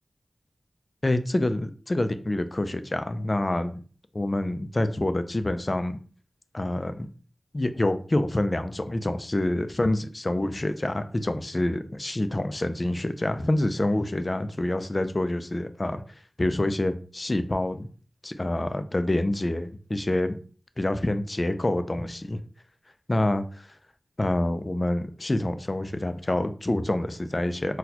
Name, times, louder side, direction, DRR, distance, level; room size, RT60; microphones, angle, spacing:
voice 1, 1.0-3.8 4.1-6.0 6.5-7.1 7.5-16.0 16.4-17.9 18.2-20.4 20.8-22.4 23.1-23.7 24.2-27.8, left 1 dB, 35° left, 10 dB, 0.4 m, -27 dB
4.0 x 2.2 x 2.8 m, 0.40 s
wide cardioid pair, 50°, 0 cm